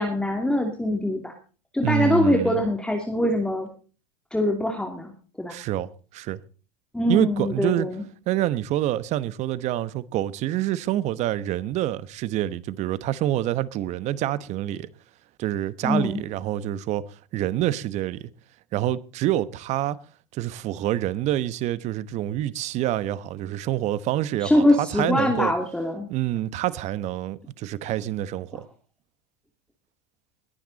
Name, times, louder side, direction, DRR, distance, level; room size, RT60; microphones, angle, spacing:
voice 1, 0.0-1.3 1.7-3.7 4.3-5.6 6.9-8.0 15.8-16.2 24.4-26.1 28.5-28.6, left 1 dB, 5° left, 2.7 m, -23 dB
voice 2, 1.8-2.6 5.5-6.4 7.1-7.9 8.3-14.9 15.4-17.1 17.3-18.3 18.7-20.0 20.3-25.5 26.1-28.7, right 13 dB, 50° right, 1.1 m, -27 dB
21.5 x 9.6 x 4.1 m
hypercardioid pair, 100°, 15 cm